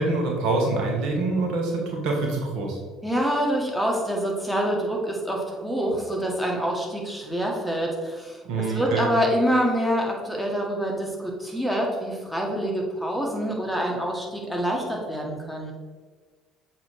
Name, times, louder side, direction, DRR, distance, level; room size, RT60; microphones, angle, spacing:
voice 1, 0.0-2.8 8.4-9.0, right 3 dB, 65° right, 0 dB, 1.3 m, -25 dB
voice 2, 3.0-15.7, equal, ahead, -2 dB, 1.6 m, -26 dB
7.3 x 3.1 x 4.8 m, 1.5 s
hypercardioid pair, 60°, 0 cm